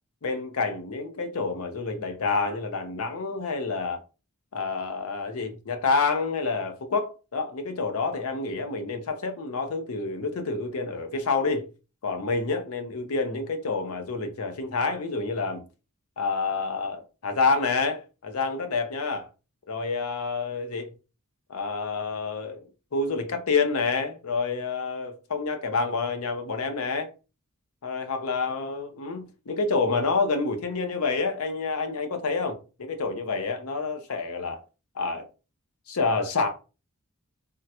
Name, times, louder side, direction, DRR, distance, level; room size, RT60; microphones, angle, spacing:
voice 1, 0.2-4.0 4.5-11.7 12.0-15.6 16.2-19.3 19.7-20.9 21.5-27.1 27.8-34.6 34.9-35.3 35.9-36.5, left 4 dB, 70° left, 0.6 m, -28 dB
3.6 x 2.1 x 2.8 m
head